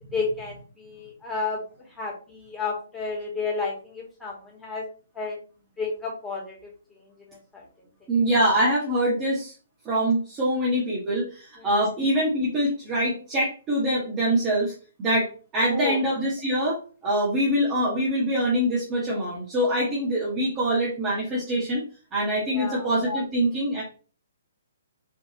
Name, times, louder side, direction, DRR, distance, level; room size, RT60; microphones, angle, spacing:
voice 1, 0.0-4.8 5.1-5.4 5.8-7.7 8.0-8.1 11.6-11.7 15.7-16.0 22.5-22.9, left 4 dB, 5° left, -5 dB, 2.1 m, -32 dB
voice 2, 8.1-9.5 9.8-14.7 15.0-21.8 22.1-23.8, right 1 dB, 20° right, -6 dB, 1.5 m, -24 dB
4.7 x 3.4 x 3.0 m, 0.39 s
figure-of-eight pair, 125°, 0 cm